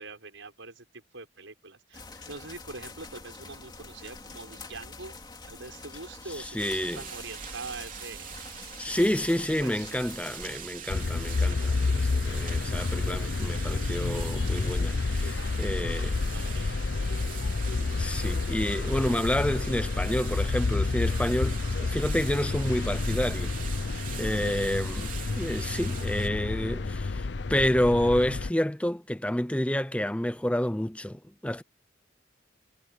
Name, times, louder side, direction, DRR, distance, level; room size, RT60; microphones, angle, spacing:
voice 1, 0.0-5.2 5.5-10.0 15.3-17.3 24.1-24.7, right 3 dB, 85° right, 5.8 m, -45 dB
sound 1, 1.9-10.6, left 3 dB, 20° left, 2.9 m, -46 dB
voice 2, 6.3-7.0 8.8-16.7 17.8-23.5 23.9-31.6, left 1 dB, 5° left, 0.7 m, -29 dB
sound 2, 6.6-26.3, right 7 dB, 45° right, 3.8 m, -43 dB
sound 3, 10.9-28.5, left 3 dB, 65° left, 0.7 m, -29 dB
head